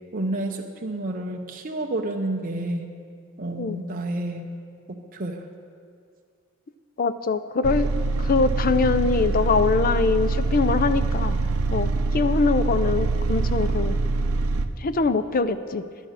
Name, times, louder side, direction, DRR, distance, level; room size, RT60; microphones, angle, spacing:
voice 1, 0.1-2.9 3.4-4.5 4.9-5.4, right 1 dB, 40° right, 2 dB, 0.8 m, -30 dB
voice 2, 7.0-7.9 8.2-11.4 11.7-14.0 14.8-15.8, left 4 dB, 40° left, 12 dB, 0.5 m, -23 dB
sound 1, 7.6-14.7, right 3 dB, 80° right, 0.7 m, -24 dB
11.0 x 11.0 x 6.5 m, 2.2 s
head